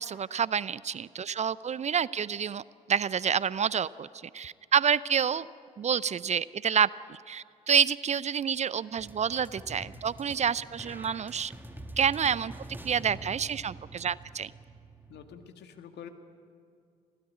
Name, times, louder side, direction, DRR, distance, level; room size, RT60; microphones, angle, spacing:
voice 1, 0.0-2.6 2.9-4.1 4.3-5.5 5.8-11.5 12.0-12.5 12.8-14.5, right 7 dB, 35° right, 20 dB, 0.5 m, -28 dB
sound 1, 9.0-15.5, right 2 dB, 10° right, 1.8 m, -46 dB
voice 2, 15.1-16.1, left 8 dB, 60° left, 6 dB, 2.1 m, -46 dB
22.0 x 16.5 x 9.7 m, 2.3 s
hypercardioid pair, 50°, 19 cm